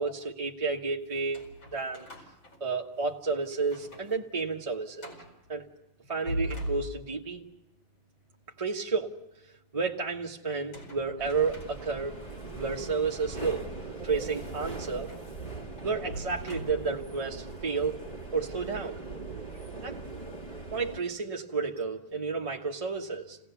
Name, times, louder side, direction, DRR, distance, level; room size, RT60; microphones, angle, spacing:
voice 1, 0.0-1.4 1.7-2.1 2.6-5.1 5.5-5.6 6.1-7.4 8.6-9.1 9.7-12.2 12.5-13.7 14.0-15.1 15.8-18.0 18.3-19.0 19.8-20.0 20.7-23.4, right 4 dB, 20° right, -1 dB, 1.0 m, -31 dB
sound 1, 1.1-3.2 3.6-4.2 4.5-4.6 5.0-5.4 6.0-7.3 10.5-12.3 12.9-13.1 14.8-17.1, equal, 65° left, 5.7 m, -41 dB
sound 2, 11.2-21.0, right 3 dB, 20° left, 1.8 m, -41 dB
28.5 x 17.5 x 7.0 m, 0.94 s
omnidirectional pair, 2.3 m